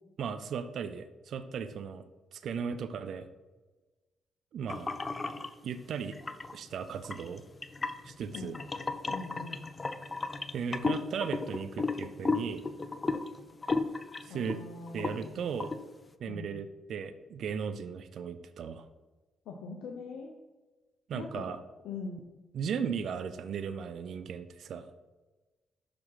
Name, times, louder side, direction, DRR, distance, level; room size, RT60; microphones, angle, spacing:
voice 1, 0.2-2.0 2.3-3.3 4.5-4.9 5.6-6.2 6.5-7.4 8.0-8.6 10.5-12.6 14.2-14.6 14.9-15.7 16.2-18.8 21.1-21.6 22.5-24.9, right 6 dB, 70° right, 11 dB, 0.5 m, -36 dB
sound 1, 4.7-5.5 6.1-6.6 7.0-14.6 14.9-15.2 15.6-15.8, left 3 dB, 30° left, 0.5 m, -34 dB
voice 2, 9.0-9.7 14.3-15.5 16.2-16.5 19.5-20.3 21.1-21.5 21.8-22.2, left 4 dB, 85° left, 2 dB, 0.7 m, -42 dB
6.0 x 5.0 x 5.6 m, 1.2 s
cardioid pair, 75°, 0 cm